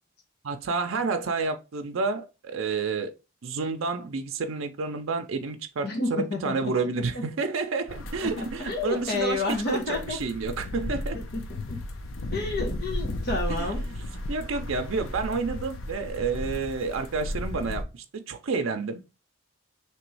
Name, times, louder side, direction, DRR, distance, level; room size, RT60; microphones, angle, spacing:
voice 1, 0.4-3.1 3.4-11.2 13.5-13.9 14.3-19.0, right 4 dB, 80° right, 0.5 m, -30 dB
voice 2, 5.8-7.2 8.4-10.2 11.3-11.8 12.3-13.8, left 2 dB, 50° left, 0.9 m, -30 dB
sound 1, 7.9-17.8, left 1 dB, 90° left, 0.7 m, -35 dB
3.2 x 3.0 x 4.6 m
head